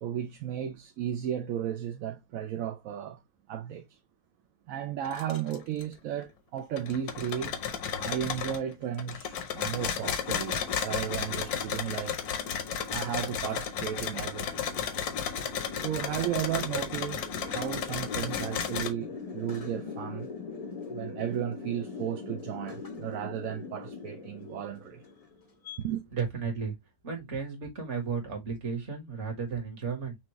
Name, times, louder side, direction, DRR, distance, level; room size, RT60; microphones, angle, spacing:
voice 1, 0.0-3.2 3.5-4.0 4.7-7.6 8.0-12.2 12.9-14.7 15.3-15.4 15.8-20.3 20.9-25.0 25.8-26.0, right 10 dB, 65° right, 1.0 m, -34 dB
sound 1, 5.0-5.8 6.2-6.3 6.8-8.6 9.0-18.9, left 7 dB, 75° left, 1.3 m, -33 dB
sound 2, 9.4-25.8, left 4 dB, 35° left, 0.6 m, -43 dB
voice 2, 26.1-26.7 27.0-30.2, right 5 dB, 50° right, 1.8 m, -34 dB
6.0 x 2.4 x 3.0 m
omnidirectional pair, 1.7 m